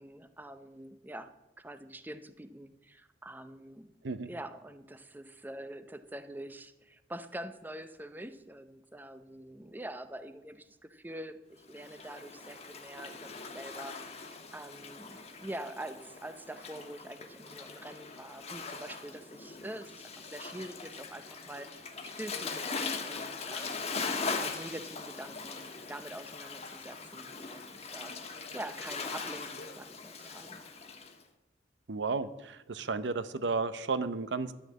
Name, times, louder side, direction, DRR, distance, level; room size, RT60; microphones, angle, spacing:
voice 1, 0.0-3.9 4.3-21.7 22.0-30.6, right 1 dB, 10° right, 11 dB, 0.6 m, -45 dB
Waves surf, 11.7-31.1, left 4 dB, 35° left, 1.3 m, -41 dB
voice 2, 31.9-34.5, right 4 dB, 80° right, 13 dB, 0.7 m, -33 dB
11.5 x 6.4 x 8.5 m, 0.97 s
head